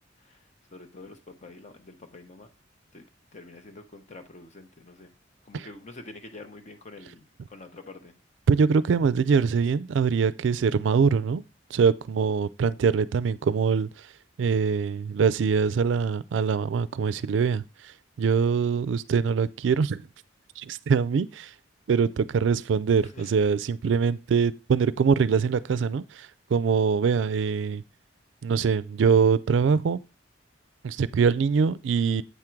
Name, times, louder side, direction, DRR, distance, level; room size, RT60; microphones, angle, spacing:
voice 1, 0.2-2.5 2.9-3.1 3.3-5.1 5.4-8.1 23.0-23.3, left 2 dB, 35° left, 0.8 m, -46 dB
voice 2, 8.5-11.4 11.7-13.9 14.4-17.6 18.2-20.0 20.6-21.5 21.9-27.8 28.4-30.0 30.8-32.2, right 6 dB, 70° right, 0.3 m, -23 dB
8.2 x 3.6 x 4.5 m
head